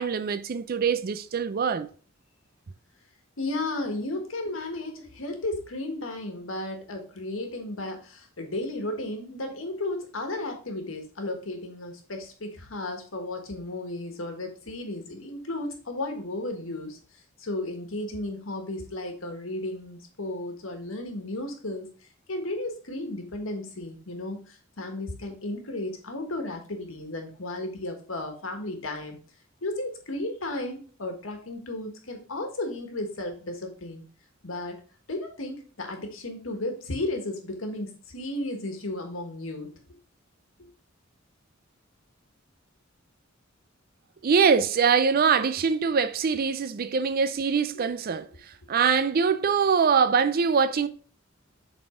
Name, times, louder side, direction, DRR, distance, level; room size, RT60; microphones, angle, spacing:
voice 1, 0.0-1.9 44.2-48.3 48.7-50.9, right 6 dB, 50° right, 0.4 m, -23 dB
voice 2, 3.4-17.0 17.4-21.9 22.3-29.2 29.6-34.0 34.4-34.8 35.1-39.7 47.7-47.9, left 2 dB, 85° left, 1.5 m, -34 dB
7.3 x 4.0 x 3.7 m
head